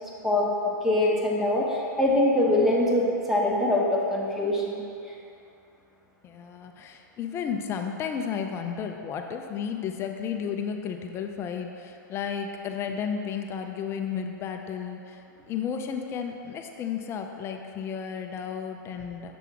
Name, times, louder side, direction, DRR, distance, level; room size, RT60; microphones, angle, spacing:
voice 1, 0.2-5.1, left 1 dB, 5° right, -4 dB, 0.9 m, -24 dB
voice 2, 6.2-19.4, left 7 dB, 25° left, 4 dB, 0.5 m, -33 dB
6.9 x 3.5 x 6.0 m, 2.7 s
hypercardioid pair, 140°, 11 cm